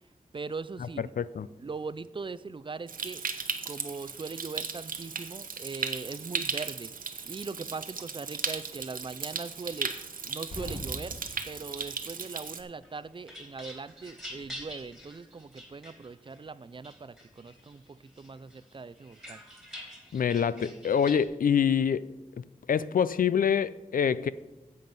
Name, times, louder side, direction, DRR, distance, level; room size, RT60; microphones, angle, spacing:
voice 1, 0.3-1.1 1.6-3.2 3.7-6.9 7.3-19.4, right 4 dB, 35° right, 0.4 m, -40 dB
voice 2, 1.2-1.5 20.1-22.1 22.4-24.3, left 7 dB, 85° left, 0.4 m, -26 dB
Stream, 2.9-12.6, right 5 dB, 90° right, 0.8 m, -36 dB
sound 1, 8.7-8.8 9.1-9.3 9.5-9.7 10.0-13.0 13.3-14.9, left 1 dB, 70° left, 1.9 m, -44 dB
sound 2, 12.8-16.4 16.8-17.7 18.2-21.3, equal, ahead, 2.4 m, -46 dB
9.5 x 7.6 x 5.3 m
wide cardioid pair, 85°, 14 cm